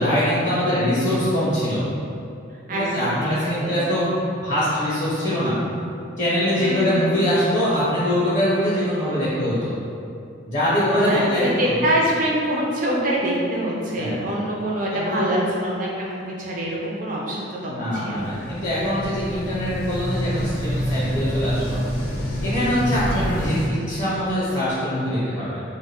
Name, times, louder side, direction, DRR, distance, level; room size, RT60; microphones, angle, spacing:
voice 1, 0.0-1.8 2.7-4.1 4.4-5.6 6.2-9.7 10.4-11.7 14.0-14.2 14.9-15.3 17.7-21.8 22.4-25.6, equal, 35° left, -10 dB, 0.6 m, -23 dB
voice 2, 2.7-4.0 6.6-7.1 11.1-18.5 23.1-23.2, right 1 dB, 40° right, -3 dB, 0.4 m, -25 dB
sound 1, 18.2-23.7, equal, 85° left, 0.5 m, -27 dB
2.1 x 2.1 x 3.5 m, 2.5 s
head